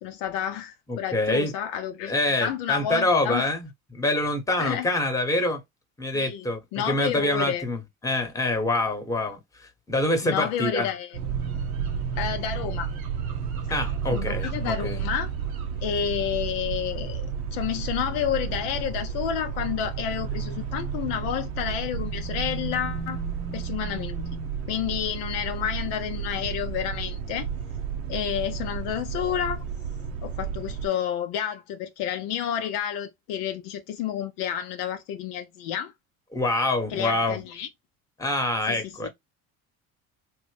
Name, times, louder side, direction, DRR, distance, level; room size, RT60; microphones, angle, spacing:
voice 1, 0.0-2.1 2.4-3.5 4.6-4.9 6.1-6.5 6.7-7.7 10.2-11.2 12.2-12.9 13.7-13.8 14.1-15.3 15.8-23.2 23.5-24.2 24.7-27.5 28.1-29.6 30.2-35.9 36.9-37.7 38.7-39.1, left 9 dB, 60° left, 0.5 m, -30 dB
voice 2, 0.9-1.5 2.1-5.6 6.0-6.6 6.8-10.9 13.7-15.0 36.3-37.4 38.2-39.1, left 2 dB, 10° left, 1.0 m, -26 dB
sound 1, 11.1-30.9, right 6 dB, 80° right, 0.7 m, -32 dB
2.9 x 2.1 x 3.2 m
hypercardioid pair, 65°, 42 cm